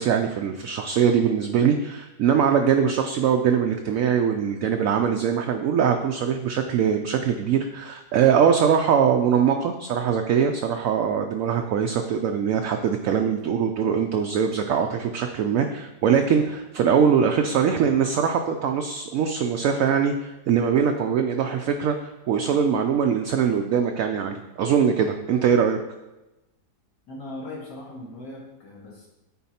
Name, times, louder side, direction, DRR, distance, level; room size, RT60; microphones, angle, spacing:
voice 1, 0.0-25.8, right 7 dB, 70° right, 4 dB, 0.8 m, -22 dB
voice 2, 27.1-29.1, left 1 dB, 70° left, -4 dB, 1.9 m, -39 dB
9.4 x 4.4 x 4.2 m, 1.0 s
omnidirectional pair, 1.8 m